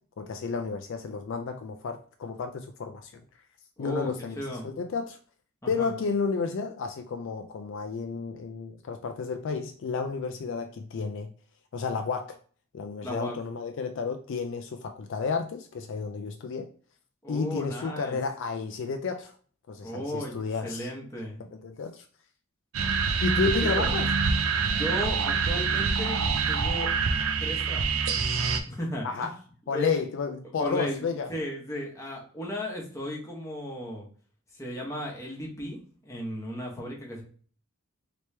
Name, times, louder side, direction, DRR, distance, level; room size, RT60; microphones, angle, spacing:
voice 1, 0.2-3.1 3.8-5.2 5.7-11.3 11.7-12.4 12.7-16.7 17.3-19.3 19.7-20.9 21.4-22.0 23.2-24.1 29.0-29.3 29.7-31.3, left 5 dB, 60° left, 0.4 m, -31 dB
voice 2, 3.8-4.1 4.4-4.7 5.8-5.9 13.0-13.4 17.2-18.2 19.8-21.4 23.6-23.9 24.7-26.9 27.4-28.1 28.7-29.3 29.7-30.0 30.6-34.1 34.5-37.2, equal, 15° left, 1.0 m, -35 dB
sound 1, 22.7-28.6, right 5 dB, 75° right, 0.5 m, -26 dB
3.0 x 3.0 x 3.2 m
head